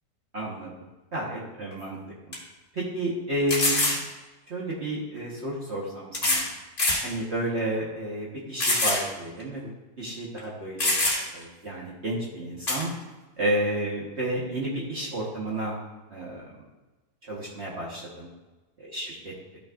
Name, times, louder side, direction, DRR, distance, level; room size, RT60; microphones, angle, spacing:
voice 1, 0.3-2.0 2.3-2.4 2.7-4.0 4.5-6.5 7.0-9.7 10.0-10.9 11.3-12.9 13.4-15.8 16.1-16.5 17.3-18.3 18.8-19.6, right 1 dB, 45° right, -5 dB, 1.5 m, -31 dB
sound 1, 1.7-1.8 2.3-2.4 3.5-4.0 5.2-5.3 6.1-6.5 6.8-7.1 7.6-7.7 8.6-9.1 9.4-9.5 10.4-10.5 10.8-11.4 12.7-12.8, left 2 dB, 40° left, 2.0 m, -24 dB
13.5 x 6.2 x 2.5 m, 1.2 s
omnidirectional pair, 1.7 m